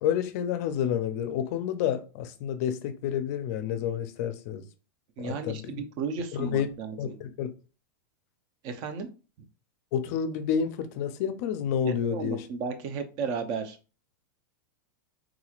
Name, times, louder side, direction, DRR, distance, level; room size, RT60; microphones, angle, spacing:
voice 1, 0.0-4.6 5.2-5.8 6.3-6.7 7.0-7.5 9.9-12.5, left 8 dB, 50° left, 0.4 m, -29 dB
voice 2, 5.2-7.1 8.6-9.1 11.8-13.8, right 5 dB, 40° right, 0.6 m, -34 dB
3.6 x 3.0 x 2.4 m
supercardioid pair, 155°, 11 cm